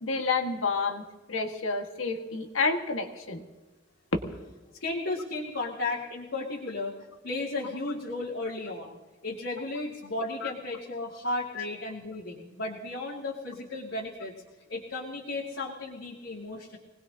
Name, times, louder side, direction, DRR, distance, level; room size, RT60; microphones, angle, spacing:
voice 1, 0.0-3.4 10.4-10.5 11.6-11.7, left 4 dB, 85° left, 3 dB, 1.8 m, -30 dB
voice 2, 4.8-7.0 7.2-9.0 9.2-14.3 14.7-16.8, left 2 dB, 70° left, -5 dB, 2.5 m, -34 dB
24.5 x 19.5 x 2.9 m, 1.3 s
head